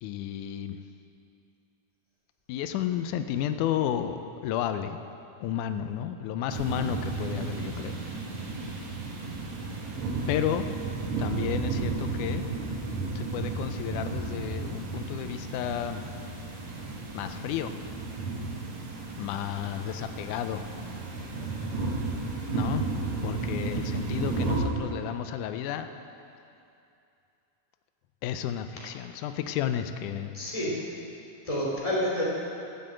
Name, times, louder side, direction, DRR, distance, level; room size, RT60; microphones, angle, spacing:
voice 1, 0.0-0.8 2.5-5.0 5.4-8.0 10.3-10.6 11.2-12.5 13.2-16.0 17.1-17.7 19.2-20.6 22.5-22.8 23.2-25.9 28.2-30.3, left 10 dB, 90° left, 9 dB, 2.1 m, -32 dB
sound 1, 6.5-24.6, right 3 dB, 65° right, 2.9 m, -33 dB
voice 2, 21.4-21.8 30.3-30.7 31.4-32.2, equal, 10° left, -6 dB, 2.9 m, -30 dB
14.0 x 7.7 x 7.8 m, 2.6 s
omnidirectional pair, 3.4 m